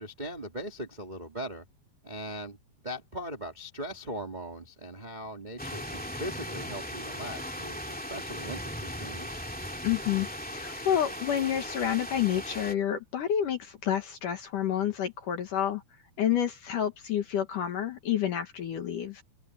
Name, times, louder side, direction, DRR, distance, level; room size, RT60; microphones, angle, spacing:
voice 1, 0.0-1.6 2.0-2.6 2.8-9.3, equal, 20° right, 1.1 m, -39 dB
sound 1, 5.6-12.7, equal, 5° left, 1.2 m, -38 dB
voice 2, 9.8-15.8 16.2-19.2, left 10 dB, 60° left, 2.6 m, -29 dB
open air
omnidirectional pair, 5.1 m